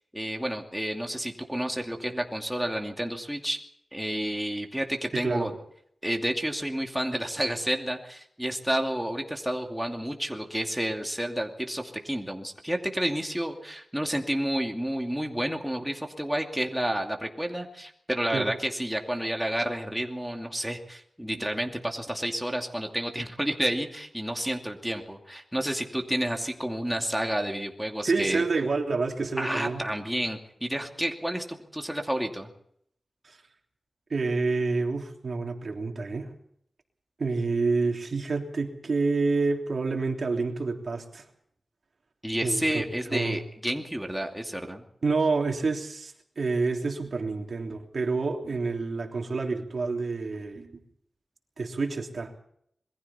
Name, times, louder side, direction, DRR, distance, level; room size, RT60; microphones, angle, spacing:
voice 1, 0.1-3.6 3.9-5.5 6.0-28.4 29.4-32.5 42.2-44.8, right 1 dB, 5° right, 2 dB, 2.6 m, -30 dB
voice 2, 5.1-5.5 18.3-18.5 28.0-29.8 33.2-33.4 34.1-36.3 37.2-41.2 42.4-42.8 43.1-43.4 45.0-50.8 51.6-52.4, right 3 dB, 65° right, 2 dB, 3.3 m, -28 dB
27.0 x 22.0 x 4.3 m, 0.68 s
wide cardioid pair, 100°, 0 cm